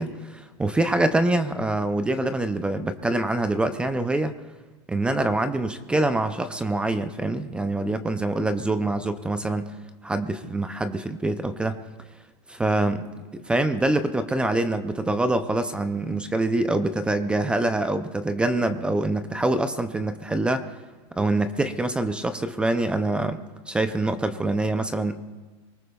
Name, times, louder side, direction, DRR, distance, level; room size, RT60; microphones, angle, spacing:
voice 1, 0.0-4.3 4.9-9.7 10.0-11.8 12.5-13.1 13.3-20.6 21.2-23.4 23.7-25.2, right 2 dB, 5° right, 10 dB, 0.4 m, -25 dB
24.0 x 19.0 x 2.3 m, 1.3 s
supercardioid pair, 160°, 15 cm